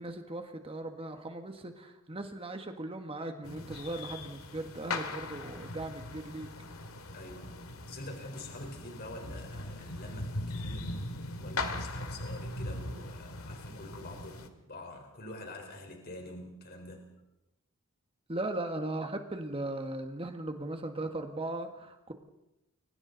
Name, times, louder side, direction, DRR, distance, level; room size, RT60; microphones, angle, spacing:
voice 1, 0.0-6.5 18.3-22.1, right 2 dB, 25° right, 5 dB, 1.5 m, -38 dB
sound 1, 3.4-14.5, left 2 dB, 80° left, 2.1 m, -40 dB
voice 2, 7.1-7.5 7.9-10.9 11.4-17.0, left 1 dB, 50° left, 2 dB, 4.3 m, -46 dB
30.0 x 24.0 x 4.0 m, 0.89 s
head